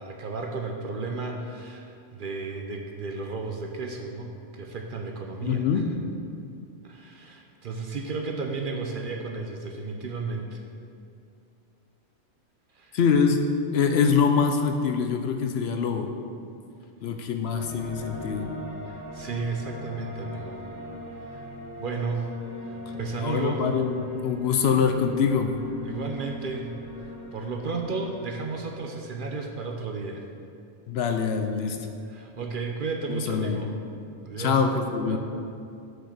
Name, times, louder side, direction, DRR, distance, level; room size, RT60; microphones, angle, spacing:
voice 1, 0.0-5.7 5.9-6.0 6.8-10.6 12.7-13.0 18.9-20.6 21.3-21.4 21.8-22.3 22.6-23.7 25.8-26.8 27.3-30.2 31.8-33.7 34.2-34.6 35.1-35.2, right 4 dB, 55° right, 2 dB, 0.7 m, -33 dB
voice 2, 5.4-5.9 12.9-13.4 13.7-16.1 17.0-18.5 23.2-25.6 30.9-31.8 33.1-33.7 34.4-35.2, left 6 dB, 65° left, 6 dB, 0.7 m, -24 dB
sound 1, 17.5-28.8, left 1 dB, 35° left, 2.1 m, -40 dB
6.2 x 5.0 x 6.6 m, 2.5 s
omnidirectional pair, 1.2 m